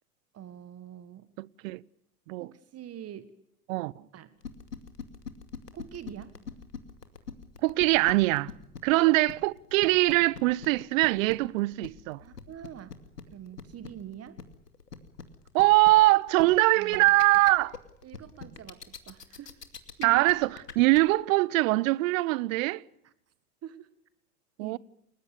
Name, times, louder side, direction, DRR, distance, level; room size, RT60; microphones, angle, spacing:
voice 1, 0.3-1.3 2.4-3.3 4.1-4.4 5.7-6.4 8.9-9.1 12.2-12.9 13.3-14.4 16.8-17.2 18.0-19.5 20.0-20.2 23.0-23.1 23.6-23.9 24.6-24.8, right 10 dB, 30° right, 1.7 m, -44 dB
voice 2, 1.4-1.8 2.3-2.5 3.7-4.0 7.6-8.5 8.8-12.2 15.5-17.8 20.0-20.5 20.8-22.8 24.6-24.8, right 20 dB, 55° right, 0.9 m, -23 dB
sound 1, 4.4-21.0, left 6 dB, 85° left, 2.6 m, -42 dB
30.0 x 20.0 x 6.8 m
hypercardioid pair, 85°, 46 cm